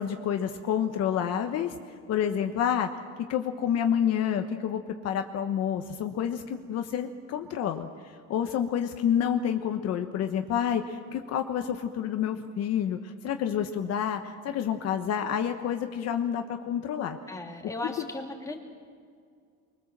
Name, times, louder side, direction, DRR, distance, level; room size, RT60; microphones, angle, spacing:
voice 1, 0.0-1.7 2.1-2.9 3.3-17.2 17.8-18.0, left 9 dB, 60° left, 6 dB, 1.3 m, -29 dB
voice 2, 17.3-18.6, left 2 dB, 10° left, 1 dB, 2.9 m, -36 dB
25.0 x 23.0 x 7.5 m, 2.1 s
cardioid pair, 145°, 29 cm